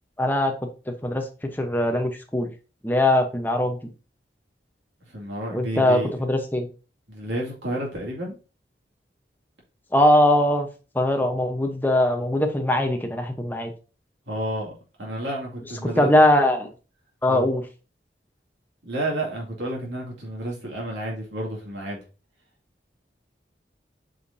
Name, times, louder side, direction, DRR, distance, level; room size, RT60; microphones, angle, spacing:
voice 1, 0.2-0.5 1.0-1.2 1.6-2.5 2.8-3.8 5.5-6.0 6.3-6.7 9.9-10.7 10.9-13.7 16.0-16.7 17.2-17.6, left 1 dB, 10° left, 4 dB, 0.9 m, -20 dB
voice 2, 5.1-6.2 7.1-8.4 14.3-14.7 15.0-16.2 17.3-17.5 18.8-22.0, right 1 dB, 85° right, -3 dB, 2.4 m, -31 dB
8.0 x 5.0 x 2.7 m, 0.34 s
head